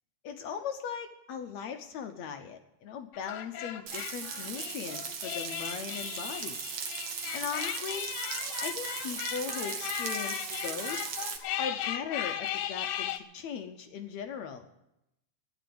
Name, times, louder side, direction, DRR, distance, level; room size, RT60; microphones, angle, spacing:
voice 1, 0.2-6.6 7.3-8.1 8.6-11.0 11.6-14.7, left 7 dB, 70° left, 6 dB, 1.8 m, -39 dB
sound 1, 3.1-13.2, left 10 dB, 90° left, 2.6 m, -37 dB
Frying (food), 3.9-11.4, right 7 dB, 60° right, 2.1 m, -38 dB
12.0 x 9.6 x 9.3 m, 0.86 s
omnidirectional pair, 3.8 m